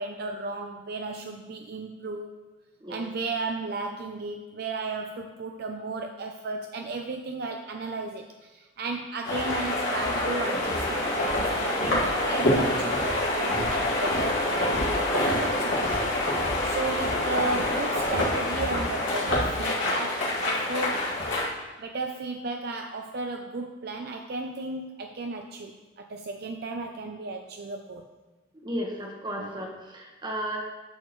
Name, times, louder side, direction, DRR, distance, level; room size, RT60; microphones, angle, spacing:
voice 1, 0.0-2.3 2.9-16.1 16.6-21.1 21.8-28.0 29.4-29.5, right 3 dB, 55° right, 4 dB, 0.5 m, -34 dB
sound 1, 9.2-21.5, left 1 dB, 75° left, 2.3 m, -26 dB
voice 2, 28.6-30.6, equal, 25° right, 0 dB, 1.2 m, -34 dB
10.5 x 6.6 x 3.1 m, 1.2 s
head